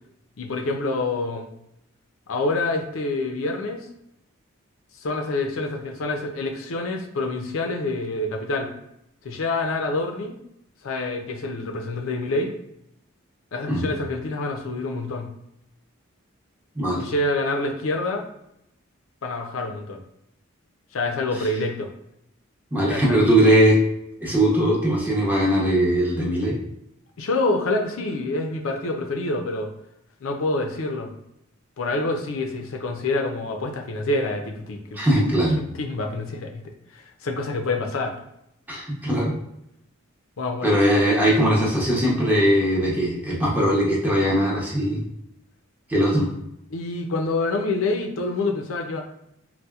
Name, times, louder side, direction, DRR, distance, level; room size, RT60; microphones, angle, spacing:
voice 1, 0.4-1.5 2.3-3.9 5.0-8.7 9.2-10.3 10.8-12.5 13.5-15.3 17.0-18.2 19.2-20.0 20.9-21.9 22.9-23.2 27.2-29.7 30.2-31.1 31.8-35.0 35.6-38.2 40.4-40.7 46.7-49.0, left 2 dB, 70° left, 3 dB, 0.5 m, -27 dB
voice 2, 22.7-23.8 24.2-26.6 34.9-35.6 38.7-39.3 40.6-45.0 45.9-46.3, right 1 dB, 10° right, -4 dB, 0.8 m, -20 dB
4.1 x 2.1 x 2.3 m, 0.79 s
head